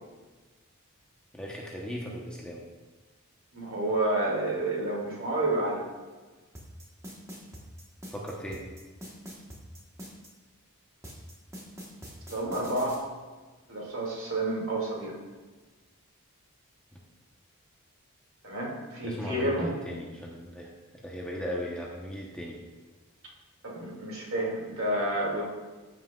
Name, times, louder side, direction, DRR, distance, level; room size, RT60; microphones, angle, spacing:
voice 1, 1.3-2.6 8.1-8.6 16.9-17.0 19.0-20.7 21.0-22.6, equal, 5° left, -3 dB, 1.0 m, -37 dB
voice 2, 3.5-5.8 12.3-13.1 13.7-15.2 18.4-19.8 23.6-25.4, right 1 dB, 65° right, -3 dB, 2.4 m, -30 dB
sound 1, 6.5-10.3 11.0-13.0, equal, 15° right, 1.3 m, -44 dB
14.5 x 5.8 x 2.4 m, 1.3 s
head